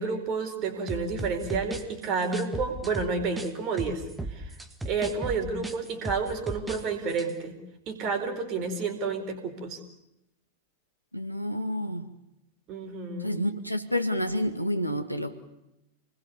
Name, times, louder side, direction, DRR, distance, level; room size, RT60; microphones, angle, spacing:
voice 1, 0.0-4.0 4.3-4.5 4.8-7.6 7.9-9.8 12.7-13.4, right 4 dB, 35° right, 7 dB, 4.6 m, -30 dB
sound 1, 0.9-3.5 3.8-6.8 7.1-7.3, right 2 dB, 5° right, 2.3 m, -36 dB
voice 2, 11.1-12.1 13.2-15.3, equal, 90° left, 7 dB, 2.1 m, -29 dB
28.5 x 20.5 x 7.1 m, 0.88 s
figure-of-eight pair, 90°, 0 cm